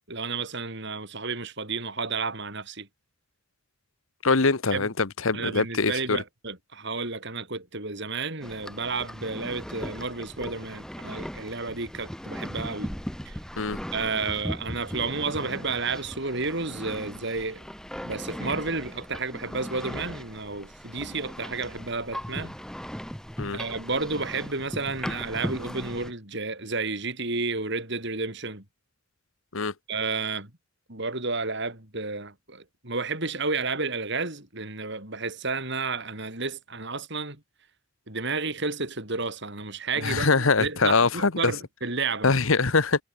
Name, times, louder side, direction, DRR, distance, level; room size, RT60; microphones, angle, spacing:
voice 1, 0.1-2.9 4.7-4.9 5.3-12.9 13.2-13.4 13.9-17.7 18.0-22.5 23.5-28.6 29.9-30.5 30.9-37.4 38.1-42.3, right 3 dB, 60° right, 6.9 m, -31 dB
voice 2, 4.2-6.2 13.6-13.8 23.4-23.6 29.5-29.7 40.0-41.5 42.2-43.0, left 4 dB, 80° left, 1.3 m, -23 dB
sound 1, 8.4-26.1, equal, 5° left, 1.5 m, -38 dB
head